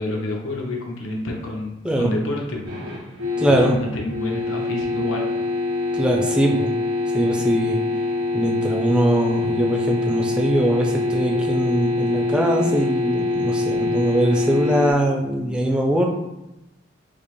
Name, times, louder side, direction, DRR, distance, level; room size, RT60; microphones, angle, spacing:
voice 1, 0.0-2.8 3.5-5.2, left 2 dB, 75° left, 0 dB, 0.7 m, -28 dB
sound 1, 2.6-14.9, left 3 dB, 80° right, 1.3 m, -24 dB
voice 2, 3.4-3.8 5.9-6.7 7.1-7.8 8.3-16.1, right 1 dB, 5° right, 0 dB, 0.4 m, -21 dB
4.9 x 2.0 x 3.0 m, 0.93 s
head